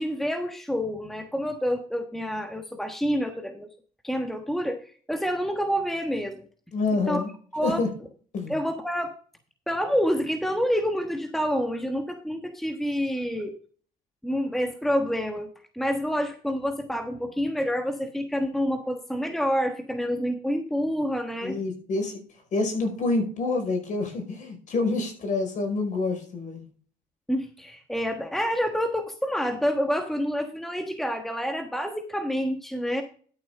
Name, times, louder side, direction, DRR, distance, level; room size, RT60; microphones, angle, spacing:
voice 1, 0.0-3.7 4.0-6.4 7.1-7.2 7.5-7.8 8.5-9.1 9.7-13.5 14.2-15.5 15.7-21.6 27.3-33.0, equal, ahead, 5 dB, 1.3 m, -28 dB
voice 2, 6.7-7.3 7.6-7.9 8.3-8.5 21.4-22.2 22.5-26.6, left 3 dB, 50° left, 5 dB, 5.2 m, -27 dB
12.5 x 7.0 x 3.7 m, 0.43 s
cardioid pair, 110°, 17 cm